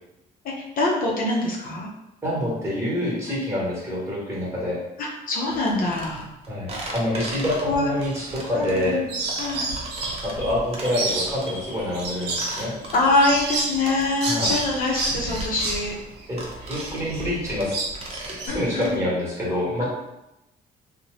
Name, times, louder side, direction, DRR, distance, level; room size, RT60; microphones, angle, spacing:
voice 1, 0.4-1.9 3.3-3.4 5.0-6.3 7.6-7.9 8.5-9.1 9.4-9.6 12.9-16.0 18.5-19.0 19.8-19.9, left 2 dB, 55° left, -3 dB, 0.6 m, -24 dB
voice 2, 2.2-4.8 6.5-9.0 10.2-12.7 14.2-14.5 16.3-17.8 18.2-19.9, left 1 dB, 15° right, -5 dB, 1.2 m, -26 dB
sound 1, 5.5-19.0, right 2 dB, 35° right, 0.6 m, -38 dB
sound 2, 8.0-8.8 9.1-18.5, right 3 dB, 80° right, 0.6 m, -30 dB
sound 3, 9.8-15.0, right 1 dB, 10° left, 0.6 m, -41 dB
2.6 x 2.1 x 3.1 m, 0.91 s
cardioid pair, 110°, 17 cm